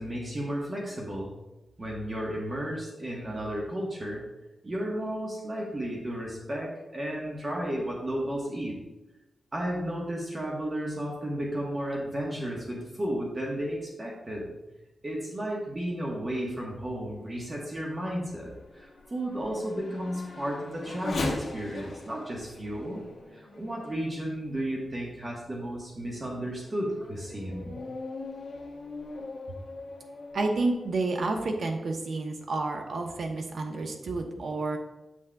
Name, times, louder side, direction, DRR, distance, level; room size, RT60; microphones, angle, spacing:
voice 1, 0.0-1.3 1.8-4.2 4.6-8.8 9.5-14.5 15.0-23.0 23.3-27.8, right 1 dB, 30° right, -3 dB, 1.2 m, -33 dB
Race car auto racing / Accelerating revving vroom, 16.9-24.8 25.4-25.5 26.1-30.9, left 2 dB, 60° left, 0.9 m, -40 dB
voice 2, 30.3-34.8, right 3 dB, 65° right, 3 dB, 0.9 m, -30 dB
8.0 x 6.1 x 2.3 m, 1.0 s
wide cardioid pair, 135°, 0 cm